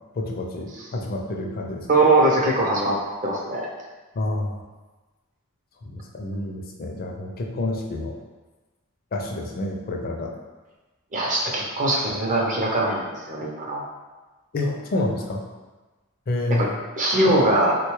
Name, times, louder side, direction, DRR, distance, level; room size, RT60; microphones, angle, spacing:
voice 1, 0.2-1.9 4.1-4.6 5.8-8.1 9.1-10.3 14.5-15.4 16.3-16.8, left 2 dB, 45° left, 1 dB, 0.4 m, -28 dB
voice 2, 1.9-3.7 11.1-13.9 16.6-16.7 17.0-17.7, right 2 dB, 35° right, -2 dB, 0.6 m, -21 dB
3.4 x 2.2 x 3.0 m, 1.2 s
head